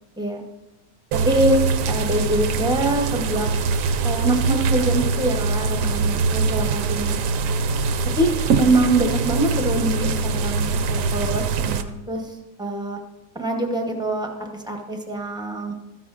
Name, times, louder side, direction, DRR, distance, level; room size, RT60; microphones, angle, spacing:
voice 1, 1.1-1.6 1.9-3.5 4.0-7.2 8.2-13.0 13.3-15.8, right 1 dB, 5° right, 2 dB, 0.4 m, -24 dB
sound 1, 1.1-11.8, right 4 dB, 70° right, 0.8 m, -23 dB
13.0 x 10.0 x 2.4 m, 1.0 s
omnidirectional pair, 1.8 m